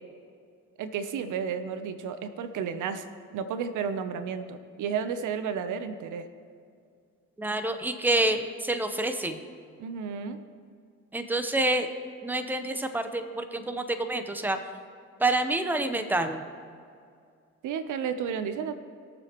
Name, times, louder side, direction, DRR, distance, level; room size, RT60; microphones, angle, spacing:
voice 1, 0.8-3.1 3.3-6.3 9.8-10.4 17.6-18.8, right 7 dB, 80° right, 10 dB, 0.8 m, -32 dB
voice 2, 7.4-9.4 11.1-11.9 12.2-14.6 15.2-16.4, right 2 dB, 5° right, 7 dB, 0.8 m, -27 dB
21.0 x 7.0 x 3.0 m, 2.3 s
cardioid pair, 90°, 30 cm